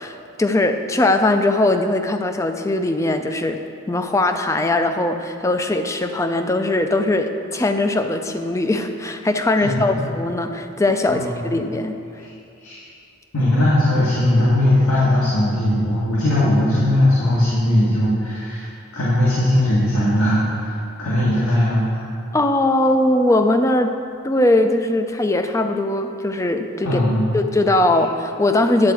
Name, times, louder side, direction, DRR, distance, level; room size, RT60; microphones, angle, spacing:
voice 1, 0.0-3.6 3.9-12.0 22.3-23.9 24.2-27.0 27.3-28.9, left 2 dB, 15° left, 7 dB, 0.4 m, -20 dB
voice 2, 11.1-11.4 12.2-12.3 12.6-12.8 13.3-18.7 18.9-20.7 21.0-22.1 26.8-27.3, left 1 dB, 90° left, -9 dB, 2.0 m, -19 dB
9.7 x 4.6 x 7.6 m, 2.6 s
head